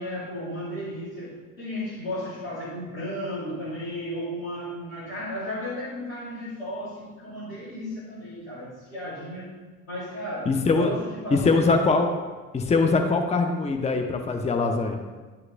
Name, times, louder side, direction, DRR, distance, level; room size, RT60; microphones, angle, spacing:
voice 1, 0.0-9.5 9.9-10.5 10.8-11.6, equal, 85° left, -10 dB, 2.5 m, -34 dB
voice 2, 10.5-10.9 11.3-12.1 12.5-15.0, left 3 dB, 15° left, 5 dB, 0.7 m, -22 dB
9.4 x 7.1 x 2.5 m, 1.4 s
figure-of-eight pair, 50°, 40 cm